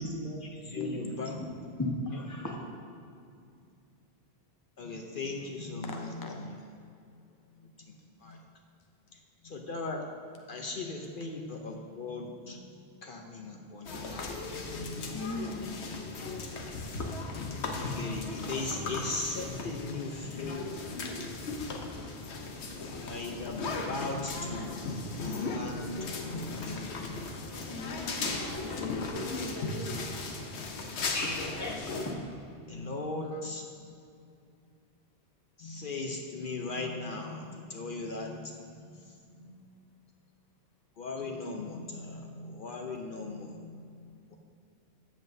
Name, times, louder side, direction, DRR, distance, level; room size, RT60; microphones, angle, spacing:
voice 1, 0.0-1.4 2.1-2.2 4.8-6.6 7.6-7.9 8.2-8.4 9.1-10.1 10.5-15.2 17.8-21.0 23.0-27.6 32.7-33.9 35.6-39.6 41.0-44.4, left 3 dB, 55° left, 2 dB, 0.8 m, -39 dB
voice 2, 1.8-2.6 30.7-31.8, left 2 dB, 15° left, -1 dB, 1.1 m, -35 dB
voice 3, 5.9-6.4 15.1-15.8 19.9-20.0 27.7-28.3 33.3-33.4, left 2 dB, 30° left, 2 dB, 0.4 m, -40 dB
sound 1, 13.8-32.1, left 3 dB, 85° left, 1.1 m, -37 dB
13.5 x 7.5 x 2.7 m, 2.4 s
omnidirectional pair, 1.1 m